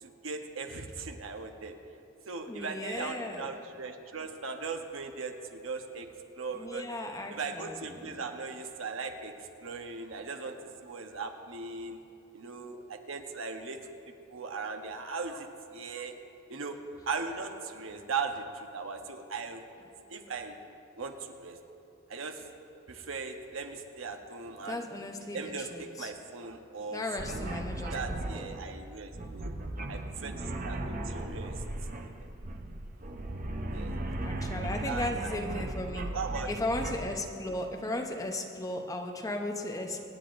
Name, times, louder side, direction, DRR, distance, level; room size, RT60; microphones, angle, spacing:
voice 1, 0.0-1.7 2.3-6.8 7.3-9.3 9.6-10.5 10.8-12.0 12.3-13.8 14.3-15.5 15.7-16.2 16.5-16.8 17.1-19.6 20.1-20.6 21.0-21.6 22.1-22.5 22.9-24.8 25.3-27.0 27.3-29.5 29.9-31.6 32.0-32.1 33.7-34.0 34.8-35.6 36.1-36.5, right 4 dB, 70° right, 5 dB, 0.9 m, -38 dB
voice 2, 2.5-3.5 6.5-8.3 24.6-26.1 26.9-28.0 28.3-28.5 34.2-36.2 36.5-40.1, left 1 dB, 15° left, 3 dB, 0.8 m, -36 dB
sound 1, 27.2-37.3, right 1 dB, 40° right, 0.7 m, -37 dB
25.0 x 9.8 x 2.6 m, 2.7 s
head